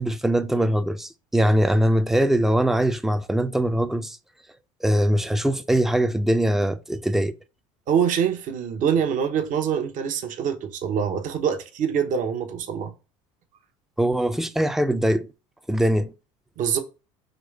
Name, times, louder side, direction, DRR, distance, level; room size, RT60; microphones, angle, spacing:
voice 1, 0.0-4.2 4.8-7.4 14.0-15.3 15.7-16.1, right 1 dB, ahead, 0.5 m, -22 dB
voice 2, 7.9-12.9 16.6-16.8, right 8 dB, 50° right, 0.9 m, -24 dB
5.2 x 3.1 x 3.2 m
hypercardioid pair, 75°, 17 cm